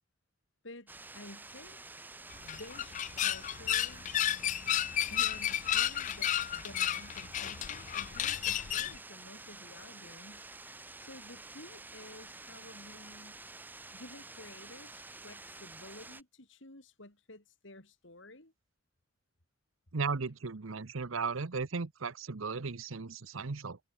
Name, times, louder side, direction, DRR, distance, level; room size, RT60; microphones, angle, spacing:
voice 1, 0.6-1.8 2.4-4.1 5.1-10.5 11.0-13.4 13.9-18.5, left 2 dB, 65° left, 4.1 m, -52 dB
sound 1, 0.9-16.2, right 3 dB, 10° right, 0.6 m, -49 dB
sound 2, 2.3-9.0, left 11 dB, 35° left, 0.3 m, -32 dB
voice 2, 19.9-23.8, right 4 dB, 80° right, 0.9 m, -36 dB
head